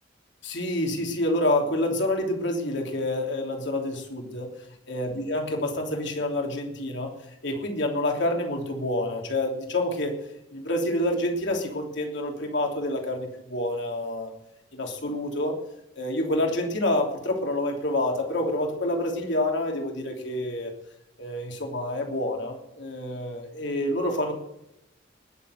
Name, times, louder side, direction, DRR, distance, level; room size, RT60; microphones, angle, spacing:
voice 1, 0.4-4.5 4.9-7.1 7.4-10.2 10.5-14.3 14.7-15.6 16.0-20.7 21.2-24.3, left 1 dB, 60° left, 2 dB, 3.1 m, -28 dB
20.0 x 7.3 x 6.6 m, 0.84 s
head